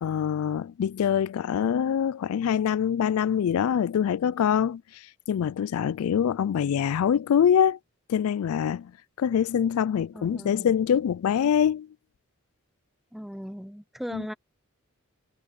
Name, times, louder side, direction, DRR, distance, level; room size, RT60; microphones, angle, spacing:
voice 1, 0.0-7.8 8.1-8.9 9.2-11.9 14.1-14.3, left 8 dB, 75° left, 0.3 m, -24 dB
voice 2, 10.1-10.7 13.1-14.3, equal, ahead, 0.6 m, -38 dB
head